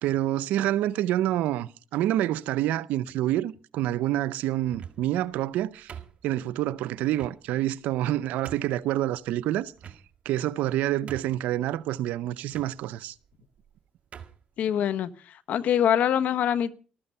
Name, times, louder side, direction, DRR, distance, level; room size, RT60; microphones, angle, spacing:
voice 1, 0.0-5.9 6.2-9.7 10.3-13.1, right 13 dB, 80° right, 0.6 m, -27 dB
sound 1, 4.6-5.2 5.9-6.6 7.2-7.4 8.0-8.1 8.4-8.8 9.8-10.3 10.7-10.8 11.1-11.5 12.5-12.7 13.6-13.7 14.1-14.4, right 8 dB, 55° right, 1.7 m, -43 dB
voice 2, 14.6-16.7, left 9 dB, 70° left, 1.2 m, -24 dB
14.5 x 13.0 x 5.5 m
supercardioid pair, 70°, 3 cm